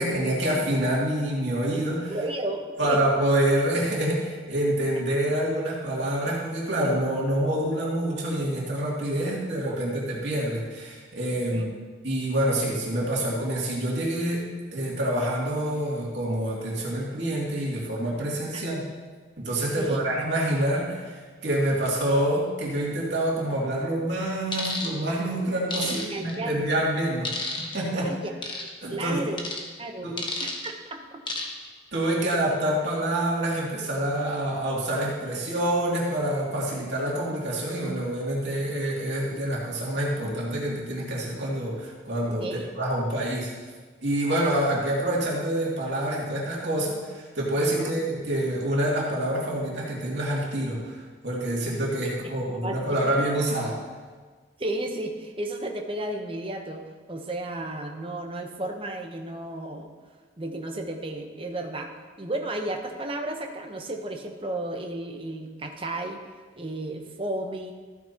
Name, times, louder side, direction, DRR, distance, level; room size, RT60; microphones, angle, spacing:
voice 1, 0.0-2.1 2.8-11.7 12.0-14.4 14.7-18.8 19.4-27.3 27.7-28.1 28.8-29.2 30.0-30.2 31.9-43.5 44.0-53.8, right 1 dB, 60° right, -5 dB, 2.6 m, -27 dB
voice 2, 2.1-3.0 9.6-9.7 11.5-11.7 18.5-18.6 19.8-20.0 25.8-26.5 28.0-28.3 28.9-29.4 29.8-30.1 30.4-31.2 42.4-42.7 47.8-47.9 52.5-53.0 54.6-56.8 57.1-59.9 60.4-61.9 62.2-66.2 66.6-67.7, right 1 dB, 25° right, 3 dB, 0.9 m, -33 dB
sound 1, 24.5-24.9 25.7-26.4 27.3-27.8 28.4-28.7 29.4-29.6 30.2-30.7 31.3-31.7 32.1-32.3, left 3 dB, 25° left, 1.1 m, -31 dB
14.5 x 9.4 x 2.9 m, 1.5 s
head